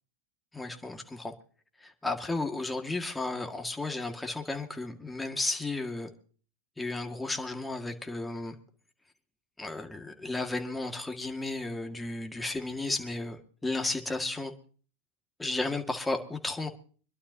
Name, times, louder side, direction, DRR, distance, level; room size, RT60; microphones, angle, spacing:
voice 1, 0.5-1.3 1.8-6.1 6.8-8.5 9.6-14.5 15.4-16.7, left 2 dB, 10° left, 4 dB, 2.0 m, -33 dB
25.5 x 11.5 x 2.8 m, 0.41 s
hypercardioid pair, 100°, 0 cm